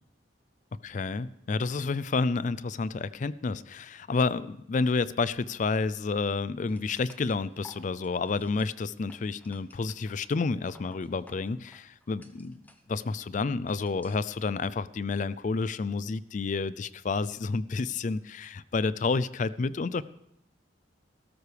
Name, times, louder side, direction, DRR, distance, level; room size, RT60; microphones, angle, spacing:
voice 1, 0.8-12.6 12.9-20.0, left 4 dB, 40° left, 18 dB, 0.4 m, -30 dB
sound 1, 6.7-14.5, left 1 dB, 10° left, 0.8 m, -57 dB
18.5 x 13.0 x 3.4 m, 0.79 s
head